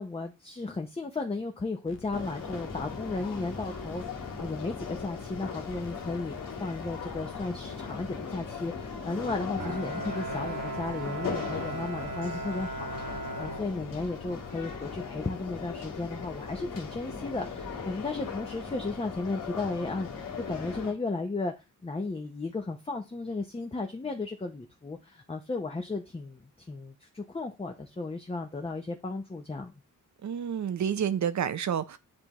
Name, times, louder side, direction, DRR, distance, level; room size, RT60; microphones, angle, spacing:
voice 1, 0.0-21.5 21.8-29.7, left 3 dB, 20° left, 0.7 m, -35 dB
sound 1, 1.8-18.6, left 5 dB, 40° left, 1.0 m, -50 dB
sound 2, 2.1-20.9, left 5 dB, 80° left, 2.0 m, -39 dB
Bowed string instrument, 9.6-14.4, right 2 dB, 75° right, 2.0 m, -38 dB
voice 2, 30.2-32.0, right 8 dB, 60° right, 0.6 m, -29 dB
9.7 x 3.4 x 3.0 m
wide cardioid pair, 110°, 32 cm